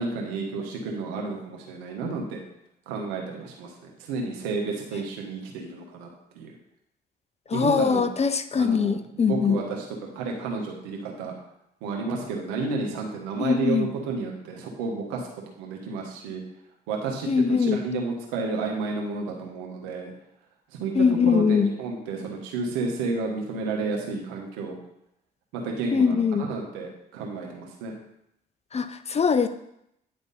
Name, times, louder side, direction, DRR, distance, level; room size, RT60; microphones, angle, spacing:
voice 1, 0.0-2.4 2.9-6.1 6.3-6.6 7.5-8.1 8.6-9.8 10.1-11.4 11.8-15.3 15.6-16.4 16.9-20.1 20.8-24.8 25.5-28.0, right 3 dB, 80° right, 0 dB, 1.3 m, -31 dB
voice 2, 7.5-9.6 13.4-13.9 17.3-17.8 20.9-21.7 25.9-26.5 28.7-29.5, left 5 dB, 30° left, 11 dB, 0.6 m, -22 dB
9.7 x 3.6 x 4.1 m, 0.79 s
hypercardioid pair, 50°, 21 cm